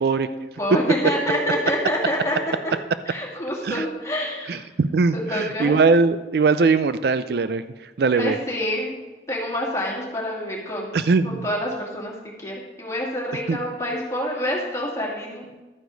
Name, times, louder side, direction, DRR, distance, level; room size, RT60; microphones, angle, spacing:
voice 1, 0.2-2.4 3.1-4.6 5.1-5.8 8.2-9.0 9.3-11.0 11.2-15.4, equal, 15° left, -3 dB, 2.4 m, -27 dB
voice 2, 4.5-7.6 8.0-8.4 10.9-11.5 13.5-13.6, right 4 dB, 60° right, 12 dB, 0.4 m, -20 dB
12.0 x 9.4 x 3.9 m, 1.2 s
head